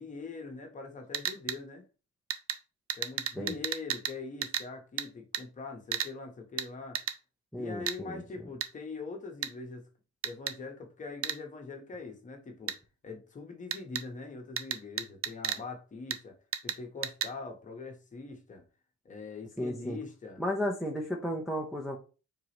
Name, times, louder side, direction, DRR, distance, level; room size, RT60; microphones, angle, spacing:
voice 1, 0.0-1.8 2.9-7.0 7.5-9.8 10.2-12.7 13.0-16.4 16.6-18.6 19.0-20.4, left 4 dB, 25° left, 1.0 m, -43 dB
sound 1, 1.1-1.6 2.3-2.6 2.9-4.2 4.4-4.7 5.0-5.1 5.3-5.4 5.9-6.1 6.6-6.7 7.0-7.2 7.9-8.0 8.6-8.7 9.4-9.5 10.2-10.6 11.2-11.4 12.7-12.8 13.7-14.0 14.6-15.6 16.1-16.2 16.5-16.8 17.0-17.3, right 9 dB, 50° right, 0.5 m, -33 dB
voice 2, 7.5-8.2 19.6-20.0 20.4-22.0, equal, ahead, 0.5 m, -33 dB
4.8 x 3.8 x 2.9 m
cardioid pair, 170°, 29 cm